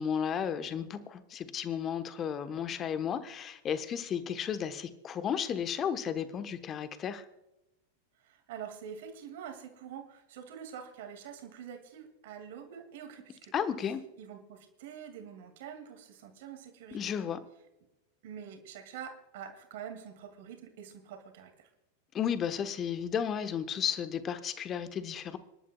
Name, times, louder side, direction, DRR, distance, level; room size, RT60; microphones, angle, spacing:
voice 1, 0.0-7.2 13.5-14.0 16.9-17.4 22.1-25.4, left 8 dB, 25° left, 11 dB, 1.1 m, -33 dB
voice 2, 8.2-13.5 14.2-17.0 18.2-21.7, right 8 dB, 55° right, 5 dB, 2.3 m, -46 dB
26.0 x 11.5 x 2.3 m, 0.90 s
figure-of-eight pair, 90°, 0 cm